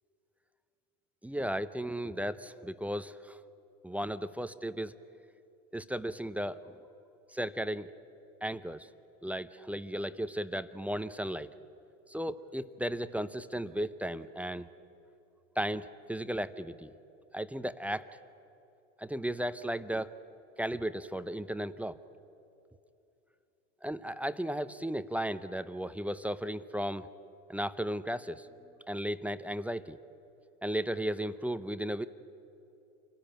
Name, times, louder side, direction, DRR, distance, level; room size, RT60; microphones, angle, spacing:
voice 1, 1.2-3.4 3.8-4.9 5.7-6.7 7.3-7.9 8.4-8.9 9.2-11.5 12.1-14.7 15.6-16.9 17.3-18.1 19.0-20.1 20.6-22.0 23.8-27.1 27.5-28.5 28.9-30.0 30.6-32.1, equal, 5° right, 13 dB, 0.6 m, -35 dB
27.0 x 17.5 x 9.0 m, 2.9 s
hypercardioid pair, 85°, 41 cm